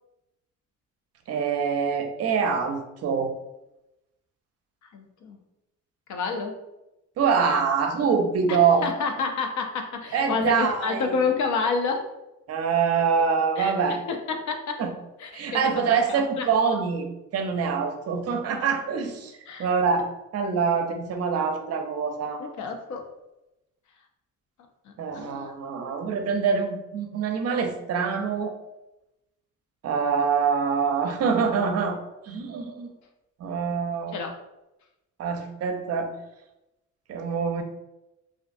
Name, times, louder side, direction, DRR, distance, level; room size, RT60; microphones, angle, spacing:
voice 1, 1.3-3.3 7.2-8.8 10.1-11.1 12.5-14.0 14.8-14.9 15.3-17.1 17.3-22.5 25.0-28.5 29.8-32.9 33.4-34.2 35.2-36.1 37.1-37.6, right 6 dB, 55° right, 5 dB, 0.5 m, -25 dB
voice 2, 4.9-5.4 6.1-6.6 8.5-12.1 13.6-13.7 14.1-14.8 15.2-16.5 19.5-19.7 22.4-23.0 24.9-25.5 34.1-34.4, left 4 dB, 70° left, 4 dB, 0.5 m, -29 dB
2.5 x 2.3 x 2.5 m, 0.92 s
cardioid pair, 90°, 30 cm